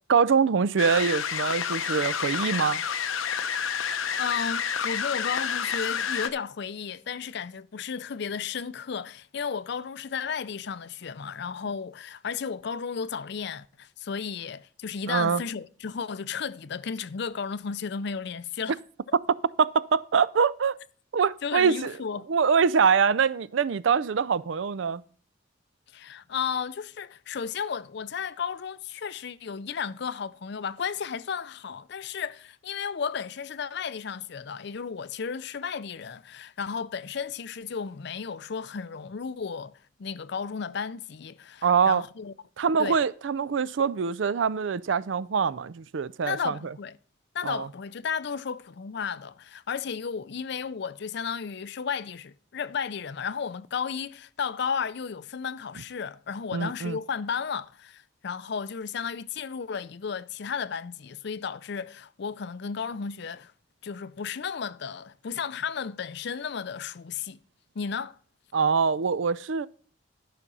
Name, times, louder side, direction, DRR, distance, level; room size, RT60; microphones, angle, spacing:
voice 1, 0.1-2.8 15.1-15.4 19.6-20.8 21.1-21.9 22.3-25.0 41.6-42.0 42.6-46.5 47.4-47.7 56.5-57.0 68.5-69.7, right 6 dB, 70° right, 0.4 m, -24 dB
sound 1, 0.8-6.3, left 7 dB, 90° left, 0.8 m, -29 dB
voice 2, 4.2-18.8 21.4-22.3 25.9-39.7 40.0-42.3 42.8-43.0 46.2-47.0 47.3-63.5 63.8-67.4 67.8-68.2, left 6 dB, 55° left, 0.5 m, -34 dB
12.5 x 5.9 x 5.4 m
head